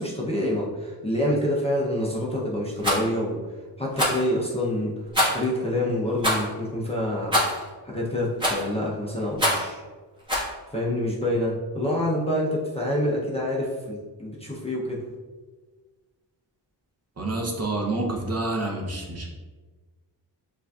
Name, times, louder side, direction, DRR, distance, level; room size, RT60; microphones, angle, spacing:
voice 1, 0.0-3.4 3.8-4.9 5.3-7.4 7.8-9.8 10.7-15.0, left 1 dB, 15° left, -4 dB, 0.5 m, -27 dB
Rattle, 2.8-3.0 3.9-4.2 5.1-5.5 6.2-6.5 7.3-7.6 8.4-8.7 9.4-9.7 10.3-10.5, equal, 10° right, 1.2 m, -23 dB
voice 2, 17.2-19.3, right 2 dB, 35° right, 0 dB, 0.6 m, -28 dB
7.1 x 2.6 x 2.3 m, 1.4 s
wide cardioid pair, 145°, 43 cm